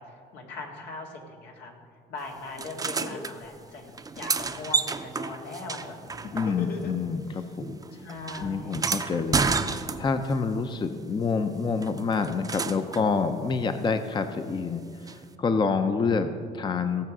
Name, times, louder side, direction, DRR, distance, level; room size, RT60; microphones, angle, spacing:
voice 1, 0.0-1.7 2.1-3.9 4.2-6.3 7.9-8.8, left 3 dB, 85° left, 0 dB, 2.1 m, -40 dB
sound 1, 2.6-3.3 3.9-6.9 7.2-10.3 11.8-13.1 15.1-15.2, right 4 dB, 20° right, 0.6 m, -30 dB
Laughter, 3.0-4.5 6.2-7.4, left 5 dB, 65° left, 1.4 m, -39 dB
voice 2, 6.3-7.8 8.4-9.5 9.7-17.1, left 5 dB, 25° left, 8 dB, 0.6 m, -27 dB
16.0 x 6.8 x 6.1 m, 2.2 s
cardioid pair, 110°, 17 cm